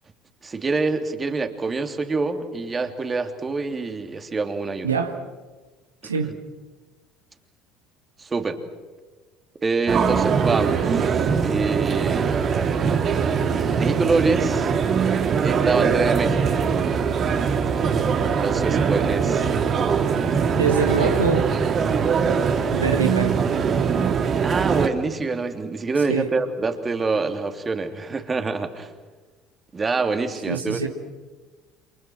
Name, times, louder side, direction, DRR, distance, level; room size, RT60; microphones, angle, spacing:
voice 1, 0.4-5.0 6.0-6.3 8.2-8.6 9.6-12.6 13.7-14.7 15.4-16.7 18.4-19.5 24.4-28.9 29.7-30.9, right 3 dB, 25° right, 6 dB, 3.1 m, -26 dB
voice 2, 4.8-5.2 6.0-6.4 20.6-21.5 22.7-23.5 26.1-26.3 30.5-30.9, right 5 dB, 85° right, 5 dB, 1.9 m, -24 dB
sound 1, 9.9-24.9, right 6 dB, 40° right, 2.5 m, -22 dB
29.5 x 28.0 x 6.3 m, 1.3 s
figure-of-eight pair, 60°, 0 cm